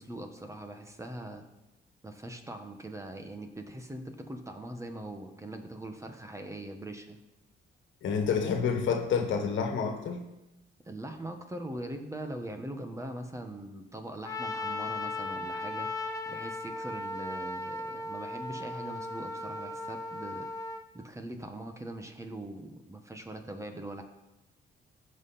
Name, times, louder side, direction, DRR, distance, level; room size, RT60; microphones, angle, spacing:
voice 1, 0.0-1.4 2.0-7.2 10.8-15.9 16.3-20.5 20.9-24.0, right 1 dB, 15° right, 6 dB, 1.2 m, -41 dB
voice 2, 8.0-10.2, left 6 dB, 75° left, 5 dB, 1.5 m, -28 dB
Trumpet, 14.2-20.8, left 2 dB, 15° left, 1.0 m, -37 dB
15.0 x 5.7 x 4.2 m, 0.96 s
cardioid pair, 90°, 20 cm